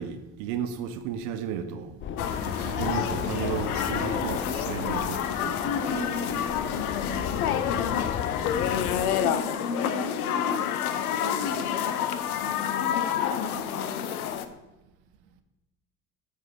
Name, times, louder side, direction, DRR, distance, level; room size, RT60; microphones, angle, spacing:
voice 1, 0.0-5.8, right 8 dB, 65° right, 0.8 m, -34 dB
sound 1, 2.0-9.2, left 9 dB, 30° left, 0.4 m, -35 dB
sound 2, 2.2-14.4, left 9 dB, 85° left, 0.6 m, -29 dB
sound 3, 2.2-7.5, right 3 dB, 25° right, 1.8 m, -45 dB
voice 2, 2.7-3.1 5.6-6.3 6.7-8.0 8.4-11.8 12.4-14.1, left 3 dB, 55° left, 1.4 m, -36 dB
8.5 x 3.7 x 6.3 m
hypercardioid pair, 60°, 43 cm